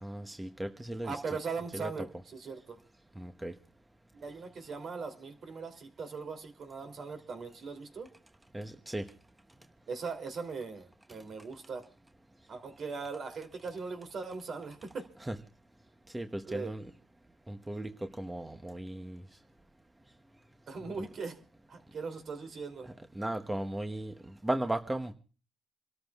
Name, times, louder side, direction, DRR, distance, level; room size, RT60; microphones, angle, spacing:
voice 1, 0.0-1.1 1.7-1.9 3.2-3.5 8.5-9.1 15.2-15.4 16.1-16.9 17.5-19.2 23.1-25.1, right 1 dB, 10° right, 7 dB, 0.9 m, -36 dB
voice 2, 1.0-2.8 4.1-8.1 9.9-11.8 12.5-15.1 16.4-16.7 20.7-21.4 21.7-22.9, right 4 dB, 55° right, 7 dB, 2.9 m, -40 dB
28.0 x 13.0 x 2.4 m, 0.37 s
cardioid pair, 90°, 0 cm